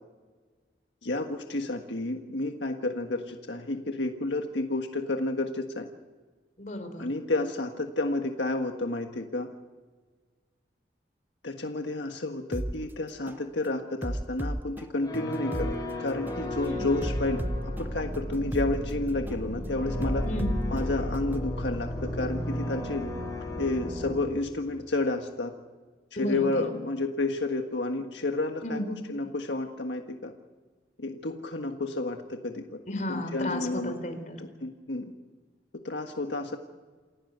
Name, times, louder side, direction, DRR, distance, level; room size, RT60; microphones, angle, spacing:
voice 1, 1.0-5.9 7.0-9.5 11.4-15.7 16.0-20.3 20.7-23.0 23.6-25.5 26.2-30.3 31.0-32.8 33.1-34.0 34.4-35.1 35.8-36.6, left 2 dB, 85° left, 4 dB, 1.6 m, -31 dB
voice 2, 6.6-7.1 16.6-16.9 20.3-20.6 26.2-26.6 28.6-29.0 32.9-34.4, left 1 dB, 45° left, 7 dB, 3.9 m, -33 dB
sound 1, 12.5-12.7 13.3-13.5 14.0-15.7 16.3-16.5 17.0-18.7 19.3-19.5 20.0-21.5, right 1 dB, 10° right, 0.6 m, -34 dB
sound 2, 15.0-24.1, left 1 dB, 20° left, 6.0 m, -33 dB
28.5 x 16.5 x 8.1 m, 1.4 s
head